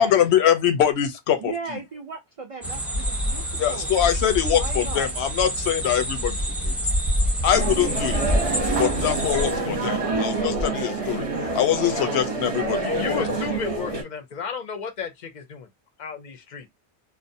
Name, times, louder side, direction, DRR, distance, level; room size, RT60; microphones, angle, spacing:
voice 1, 0.0-1.8 3.6-6.4 6.6-6.8 7.4-8.2 8.8-11.3 11.5-13.2, left 10 dB, 80° left, 0.8 m, -23 dB
voice 2, 1.4-4.0 4.5-5.1, right 5 dB, 65° right, 0.3 m, -36 dB
sound 1, 2.6-9.5, equal, ahead, 0.5 m, -26 dB
sound 2, 7.5-14.0, right 3 dB, 35° right, 0.7 m, -27 dB
voice 3, 12.6-15.7 16.0-16.7, left 6 dB, 55° left, 0.6 m, -33 dB
2.5 x 2.0 x 2.6 m
omnidirectional pair, 1.1 m